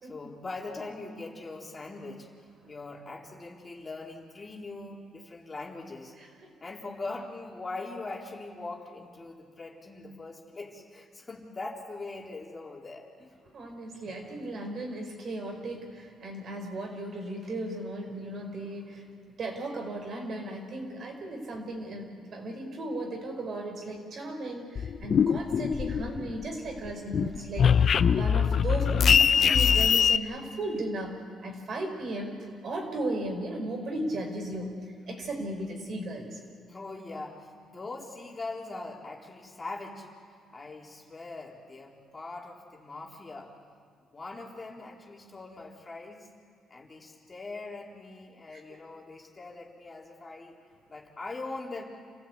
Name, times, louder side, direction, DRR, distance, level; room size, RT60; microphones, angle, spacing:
voice 1, 0.0-2.3 2.7-6.2 6.6-13.3 27.2-27.5 36.7-40.1 40.5-43.6 44.1-46.3 46.7-50.5 50.9-51.8, left 3 dB, 25° left, -1 dB, 3.7 m, -41 dB
voice 2, 13.5-19.0 19.4-32.3 32.6-34.8 35.1-36.4 48.5-48.6, right 1 dB, 55° right, 3 dB, 5.1 m, -36 dB
sound 1, 24.8-26.5 26.8-30.2, left 7 dB, 55° left, 0.6 m, -22 dB
28.5 x 16.0 x 8.5 m, 2.3 s
cardioid pair, 90°, 0 cm